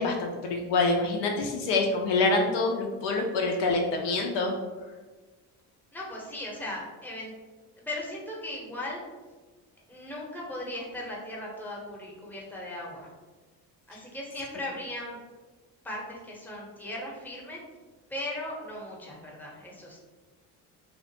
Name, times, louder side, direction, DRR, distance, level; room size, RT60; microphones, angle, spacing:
voice 1, 0.0-4.5, left 3 dB, 70° left, 2 dB, 0.5 m, -26 dB
voice 2, 5.9-7.3 7.8-9.0 9.9-13.1 13.9-15.2 15.8-17.6 18.1-20.0, left 1 dB, 5° left, -3 dB, 0.7 m, -37 dB
2.4 x 2.1 x 2.7 m, 1.3 s
supercardioid pair, 65°, 44 cm